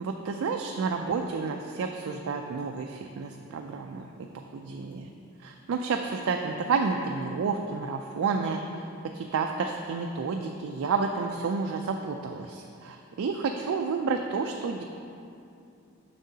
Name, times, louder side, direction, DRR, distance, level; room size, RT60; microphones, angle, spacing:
voice 1, 0.0-5.1 5.4-8.6 9.1-14.8, right 5 dB, 75° right, 3 dB, 0.3 m, -30 dB
7.3 x 6.0 x 2.8 m, 2.6 s
head